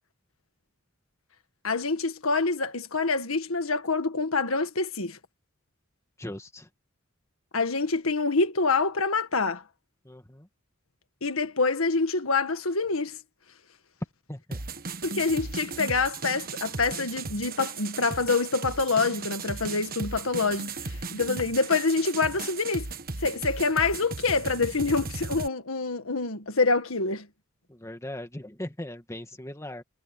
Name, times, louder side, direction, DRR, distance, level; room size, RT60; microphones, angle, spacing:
voice 1, 1.6-5.2 7.5-9.6 11.2-13.2 15.0-22.9 23.2-27.3, left 4 dB, 80° left, 1.7 m, -26 dB
voice 2, 6.2-6.7 10.0-10.5 14.3-14.6 27.7-29.8, left 1 dB, 15° left, 2.1 m, -39 dB
sound 1, 14.5-25.5, right 4 dB, 45° right, 1.4 m, -36 dB
head